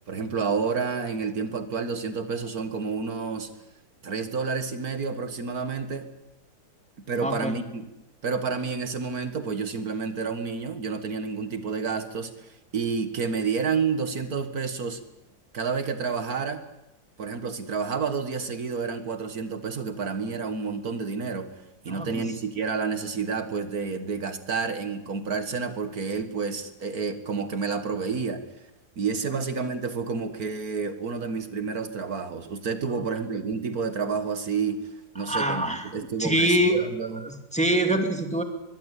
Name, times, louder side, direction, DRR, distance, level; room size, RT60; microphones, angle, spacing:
voice 1, 0.1-3.5 4.0-6.1 7.1-7.8 8.2-15.0 15.5-16.6 17.2-21.5 21.8-28.7 29.0-34.8 35.2-37.2, right 5 dB, 65° right, 9 dB, 2.1 m, -30 dB
voice 2, 7.2-7.6 21.9-22.3 32.8-33.0 35.2-35.8 36.2-38.4, right 1 dB, 5° left, 5 dB, 2.2 m, -25 dB
22.5 x 21.5 x 8.4 m, 0.92 s
omnidirectional pair, 1.7 m